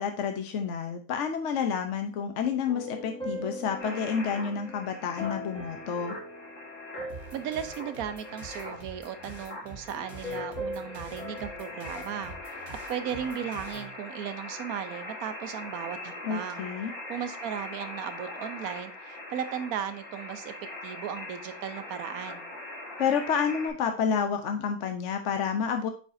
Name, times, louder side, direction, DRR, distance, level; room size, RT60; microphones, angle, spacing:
voice 1, 0.0-6.2 16.2-16.9 23.0-25.9, left 6 dB, 60° left, 5 dB, 1.0 m, -29 dB
sound 1, 2.7-9.3 9.9-12.5, left 1 dB, 5° left, 1.6 m, -41 dB
sound 2, 3.8-23.7, left 2 dB, 75° left, 2.6 m, -42 dB
sound 3, 7.1-13.9, right 3 dB, 50° right, 1.8 m, -47 dB
voice 2, 7.3-16.7 17.1-20.5 20.8-22.5, right 9 dB, 80° right, 10 dB, 1.2 m, -36 dB
8.5 x 4.9 x 2.6 m, 0.37 s
omnidirectional pair, 1.5 m